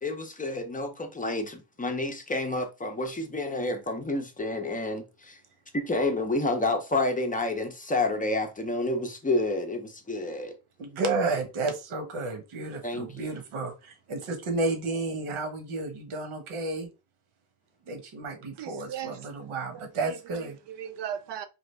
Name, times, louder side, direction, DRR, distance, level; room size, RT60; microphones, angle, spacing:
voice 1, 0.0-5.4 5.7-10.6 12.8-13.4, left 2 dB, 15° left, 0.5 m, -29 dB
voice 2, 10.8-16.9 17.9-20.6, right 3 dB, 85° right, 1.3 m, -32 dB
voice 3, 18.6-19.2 19.7-21.5, right 9 dB, 60° right, 0.5 m, -38 dB
4.7 x 2.5 x 3.2 m
wide cardioid pair, 165°, 48 cm